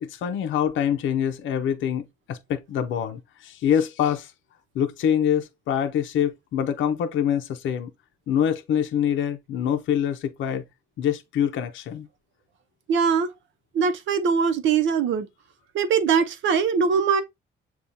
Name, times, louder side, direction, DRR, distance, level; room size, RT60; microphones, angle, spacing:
voice 1, 0.0-4.3 4.7-7.9 8.3-10.6 11.0-12.1, left 9 dB, 75° left, 0.6 m, -25 dB
voice 2, 12.9-13.3 13.7-15.3 15.7-17.2, right 6 dB, 70° right, 0.7 m, -21 dB
7.0 x 2.3 x 2.6 m
cardioid pair, 90°, 20 cm